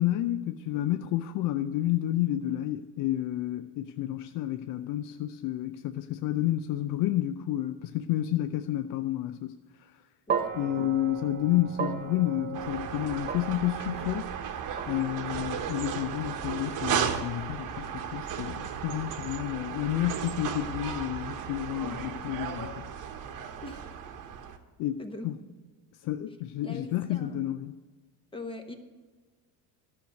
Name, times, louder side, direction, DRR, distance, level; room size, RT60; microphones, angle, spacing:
voice 1, 0.0-9.5 9.8-9.9 10.5-14.3 14.9-22.7 24.8-25.0 25.2-25.4 26.0-27.7, left 13 dB, 50° left, 10 dB, 0.5 m, -30 dB
sound 1, 10.3-18.6, right 7 dB, 25° right, 0.5 m, -38 dB
sound 2, 12.5-24.6, right 8 dB, 50° right, 1.1 m, -35 dB
voice 2, 25.0-25.6 26.6-27.4 28.3-28.8, left 2 dB, 15° left, 6 dB, 1.0 m, -42 dB
11.5 x 6.5 x 8.0 m, 1.4 s
cardioid pair, 140°, 41 cm